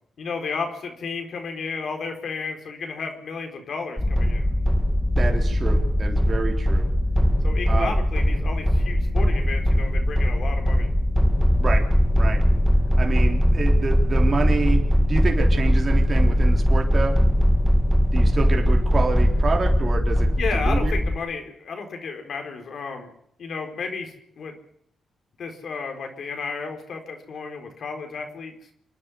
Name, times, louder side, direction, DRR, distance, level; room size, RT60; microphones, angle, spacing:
voice 1, 0.2-4.5 7.4-10.9 20.4-23.1 23.4-24.6 25.4-28.5, left 5 dB, 65° left, 4 dB, 4.4 m, -32 dB
sound 1, 4.0-21.2, equal, 10° left, 1.8 m, -20 dB
voice 2, 5.2-6.9 7.7-7.9 11.6-11.8 12.1-12.4 13.0-17.2 18.1-20.9, right 4 dB, 45° right, 1 dB, 3.8 m, -28 dB
26.5 x 10.0 x 9.8 m, 0.70 s
cardioid pair, 65°, 0 cm